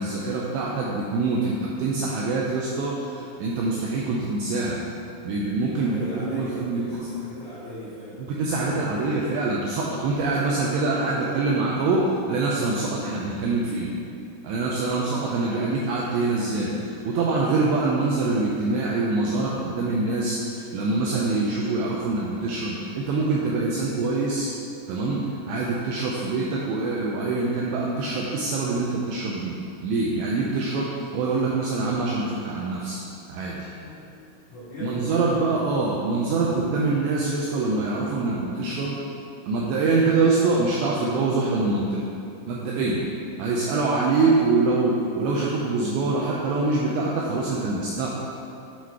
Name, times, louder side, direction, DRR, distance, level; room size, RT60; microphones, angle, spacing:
voice 1, 0.0-4.8 5.2-7.0 8.2-12.0 12.3-13.9 14.4-24.5 24.9-33.0 33.3-33.7 34.8-39.0 39.5-42.0 42.5-43.0 43.4-48.1, right 3 dB, 85° right, -4 dB, 2.5 m, -25 dB
voice 2, 5.7-9.0 14.7-15.2 33.8-34.1 34.5-35.6, left 1 dB, 70° left, -12 dB, 1.9 m, -39 dB
8.6 x 4.2 x 4.6 m, 2.5 s
omnidirectional pair, 5.6 m